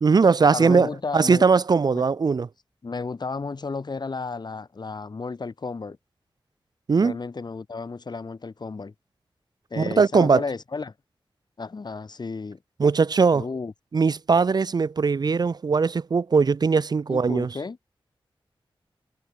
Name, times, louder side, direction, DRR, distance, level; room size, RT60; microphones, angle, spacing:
voice 1, 0.0-2.5 6.9-7.2 9.8-10.4 12.8-13.5 13.9-17.5, right 5 dB, 45° right, 0.4 m, -20 dB
voice 2, 0.5-1.5 1.9-2.0 2.8-6.0 7.0-8.9 9.7-10.9 11.6-12.6 13.3-13.7 17.1-17.8, left 4 dB, 50° left, 2.4 m, -33 dB
wide cardioid pair, 110°, 9 cm